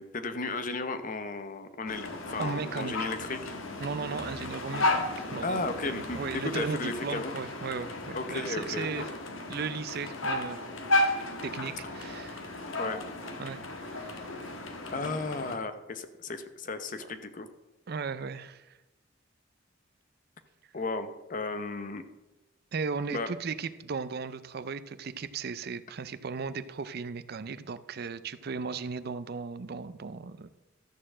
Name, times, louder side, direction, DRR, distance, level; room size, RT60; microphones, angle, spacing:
voice 1, 0.0-3.5 5.4-7.4 8.1-9.0 12.8-13.0 14.9-17.5 20.7-22.0 23.1-23.3, left 3 dB, 40° left, 10 dB, 0.8 m, -34 dB
sound 1, 1.9-15.5, left 2 dB, 80° left, 1.3 m, -34 dB
voice 2, 2.4-3.1 3.8-9.1 9.5-10.6 11.4-12.6 13.4-14.6 17.9-18.8 22.7-30.5, right 5 dB, 50° right, 14 dB, 0.5 m, -36 dB
13.0 x 4.4 x 7.3 m, 1.0 s
head